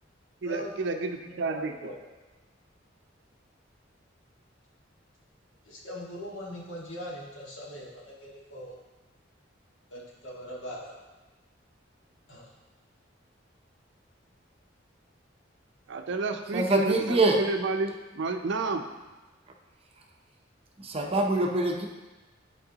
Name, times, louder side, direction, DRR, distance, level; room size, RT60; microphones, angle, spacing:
voice 1, 0.4-1.9 15.9-18.9, right 3 dB, 65° right, 6 dB, 0.5 m, -30 dB
voice 2, 1.2-2.1 5.6-8.8 9.9-10.9 12.3-12.5, equal, 80° left, -4 dB, 1.7 m, -41 dB
voice 3, 16.5-17.4 20.8-21.9, right 2 dB, 30° right, 1 dB, 0.7 m, -24 dB
10.5 x 4.6 x 2.9 m, 1.2 s
head